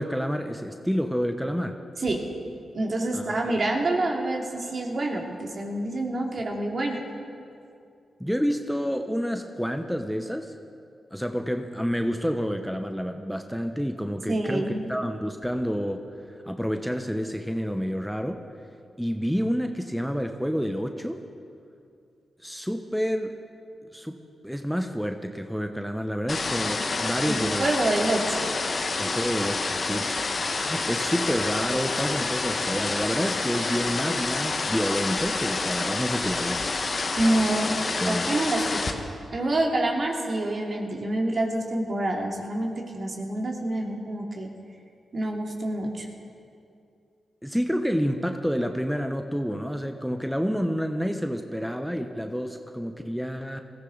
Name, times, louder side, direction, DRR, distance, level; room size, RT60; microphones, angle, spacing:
voice 1, 0.0-1.8 3.1-3.5 8.2-10.5 11.1-18.4 19.0-21.2 22.4-23.4 23.9-24.2 24.4-27.7 29.0-30.1 30.7-36.7 38.0-38.3 47.4-53.6, equal, ahead, 5 dB, 1.0 m, -29 dB
voice 2, 2.7-7.0 14.3-15.0 27.2-28.4 37.2-37.7 38.1-38.8 39.3-44.5 45.1-46.1, right 2 dB, 55° right, 0 dB, 2.5 m, -27 dB
sound 1, 26.3-38.9, left 3 dB, 55° left, 1.4 m, -28 dB
20.0 x 14.5 x 4.0 m, 2.4 s
supercardioid pair, 40°, 0 cm